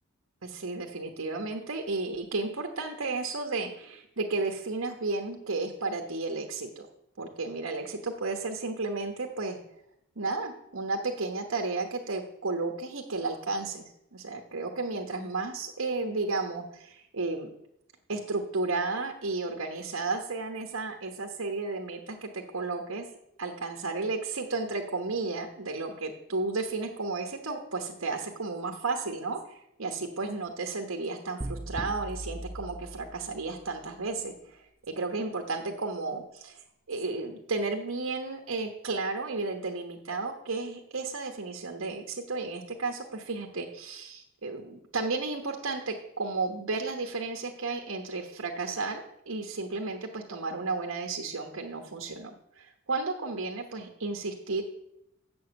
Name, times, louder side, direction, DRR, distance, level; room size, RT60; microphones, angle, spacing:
voice 1, 0.4-6.9 7.2-9.6 10.2-17.5 18.1-23.1 23.4-36.6 36.9-54.6, right 3 dB, 80° right, 3 dB, 1.2 m, -33 dB
sound 1, 31.4-33.5, right 1 dB, 15° right, 0.4 m, -39 dB
7.7 x 7.2 x 7.8 m, 0.79 s
head